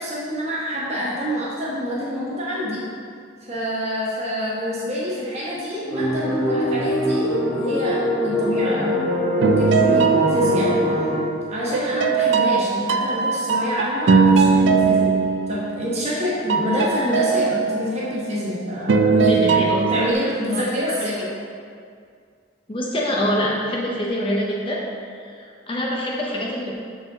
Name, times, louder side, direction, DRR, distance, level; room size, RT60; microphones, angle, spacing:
voice 1, 0.0-2.8 3.5-9.0 9.4-10.7 11.5-15.1 15.5-21.2, equal, 35° right, -7 dB, 1.2 m, -26 dB
sound 1, 5.9-11.2, left 1 dB, 5° left, 1.2 m, -23 dB
sound 2, 9.4-11.3 11.7-16.2 16.5-18.4 18.9-20.1, right 5 dB, 65° right, 0.4 m, -20 dB
voice 2, 19.0-20.1 20.5-20.7 21.2-21.3 22.7-24.9 25.3-26.7, equal, 25° left, -4 dB, 0.7 m, -25 dB
6.2 x 4.7 x 3.8 m, 2.2 s
head